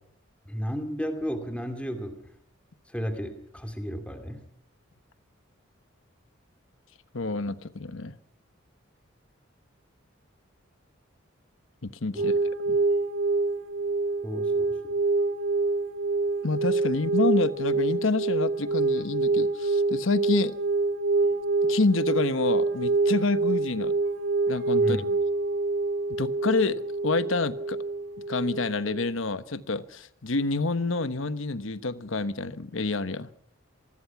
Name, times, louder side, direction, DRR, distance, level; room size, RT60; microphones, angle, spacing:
voice 1, 0.5-2.2 2.9-4.4 12.1-12.3 14.2-14.9 24.8-25.1, equal, 5° left, 5 dB, 2.5 m, -33 dB
voice 2, 7.1-8.1 11.8-12.3 12.7-12.8 16.4-20.6 21.6-23.9 24.5-25.0 26.2-27.8 28.3-33.3, left 3 dB, 75° left, 13 dB, 1.1 m, -28 dB
sound 1, 12.2-29.1, right 3 dB, 65° right, 3.2 m, -26 dB
26.0 x 20.0 x 5.9 m, 0.68 s
head